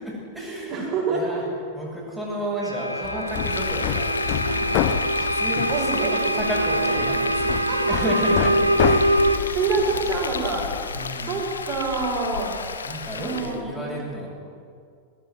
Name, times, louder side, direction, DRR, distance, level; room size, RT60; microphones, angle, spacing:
voice 1, 0.0-1.4 1.7-4.2 4.4-9.6 9.9-10.0 10.9-11.4 12.8-14.3, right 1 dB, ahead, -5 dB, 7.7 m, -32 dB
voice 2, 0.7-1.7 5.7-6.1 7.6-8.0 9.5-10.7 11.2-12.6 13.2-14.0, right 4 dB, 35° right, -3 dB, 7.2 m, -26 dB
sound 1, 2.6-9.4, right 1 dB, 90° right, 0.9 m, -23 dB
Hammer, 3.0-10.9, left 12 dB, 45° left, 1.0 m, -30 dB
Frying (food), 3.3-13.6, left 5 dB, 70° left, 1.3 m, -33 dB
19.0 x 17.5 x 9.6 m, 2.2 s
figure-of-eight pair, 90°, 0 cm